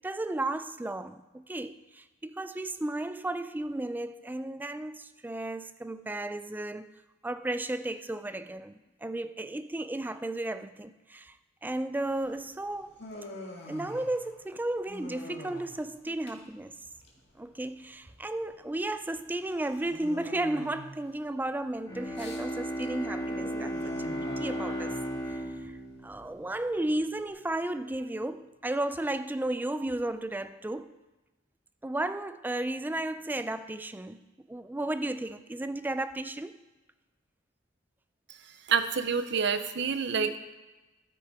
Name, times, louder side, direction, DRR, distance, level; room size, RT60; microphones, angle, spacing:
voice 1, 0.0-6.9 7.2-11.4 11.6-13.0 13.7-16.8 17.4-25.0 25.6-30.9 31.8-34.2 34.5-36.5 39.3-39.4 40.2-40.4, right 1 dB, 10° right, 11 dB, 0.3 m, -34 dB
Human voice, 12.1-27.3, left 1 dB, 60° left, 1.8 m, -47 dB
Bowed string instrument, 21.9-26.8, equal, 20° left, 1.7 m, -35 dB
voice 2, 38.7-40.4, right 6 dB, 65° right, 10 dB, 0.6 m, -27 dB
12.5 x 6.4 x 4.8 m, 1.1 s
head